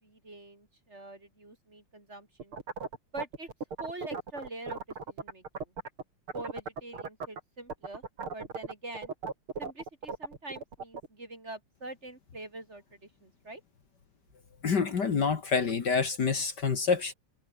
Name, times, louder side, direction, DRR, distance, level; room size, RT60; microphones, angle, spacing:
voice 1, 0.0-2.6 3.1-3.5 3.8-4.8 5.1-5.7 6.3-8.0 8.3-9.1 9.6-13.6, right 2 dB, 30° right, 4.2 m, -44 dB
sound 1, 2.4-6.0 6.3-7.4 7.7-11.1, right 4 dB, 75° right, 4.4 m, -37 dB
voice 2, 14.6-17.1, left 5 dB, 55° left, 2.3 m, -27 dB
omnidirectional pair, 2.4 m